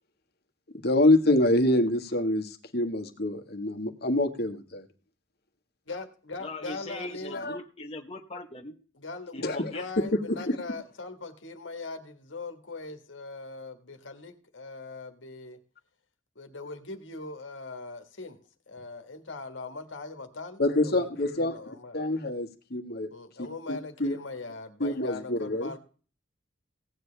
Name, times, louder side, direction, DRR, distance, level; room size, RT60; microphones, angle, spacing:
voice 1, 0.8-4.9 7.3-7.6 9.4-10.5 20.6-21.6 21.9-23.1 23.4-24.2 24.8-25.7, left 1 dB, 55° left, 1.6 m, -26 dB
voice 2, 5.9-7.5 8.9-15.6 16.3-18.4 18.7-22.0 23.1-25.8, left 3 dB, 75° left, 1.6 m, -41 dB
voice 3, 6.4-8.8 9.3-9.9, left 2 dB, 30° left, 1.0 m, -40 dB
17.0 x 9.3 x 3.4 m
head